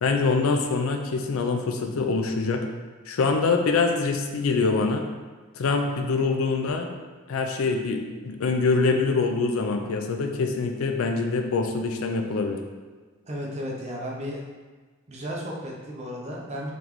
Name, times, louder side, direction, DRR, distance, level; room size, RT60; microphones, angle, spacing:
voice 1, 0.0-2.6 3.1-5.0 5.6-6.9 7.3-12.6, left 4 dB, 80° left, 4 dB, 0.4 m, -24 dB
voice 2, 13.2-14.4 15.1-16.7, equal, 30° right, -2 dB, 0.6 m, -34 dB
3.9 x 3.3 x 3.0 m, 1.4 s
head